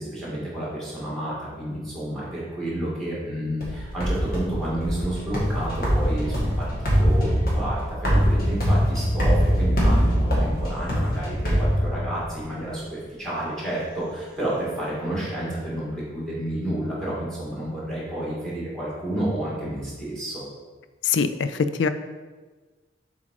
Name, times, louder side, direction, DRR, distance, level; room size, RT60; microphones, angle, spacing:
voice 1, 0.0-20.4, right 1 dB, 5° left, -7 dB, 2.2 m, -30 dB
sound 1, 3.6-12.4, equal, 50° left, 1.7 m, -23 dB
voice 2, 21.0-21.5 21.8-21.9, left 6 dB, 75° left, 12 dB, 0.4 m, -22 dB
7.2 x 3.9 x 4.8 m, 1.3 s
head